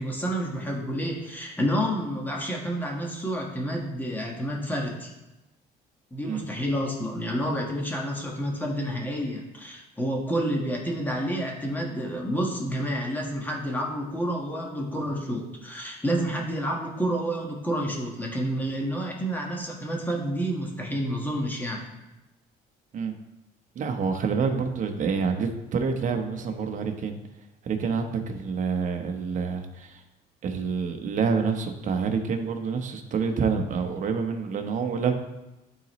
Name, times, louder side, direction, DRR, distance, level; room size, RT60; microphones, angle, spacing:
voice 1, 0.0-5.1 6.1-21.9, equal, 10° left, -1 dB, 1.5 m, -29 dB
voice 2, 23.7-27.1 27.6-30.0 30.4-35.2, right 5 dB, 50° right, 4 dB, 0.9 m, -27 dB
11.5 x 4.1 x 3.1 m, 0.98 s
cardioid pair, 110°, 17 cm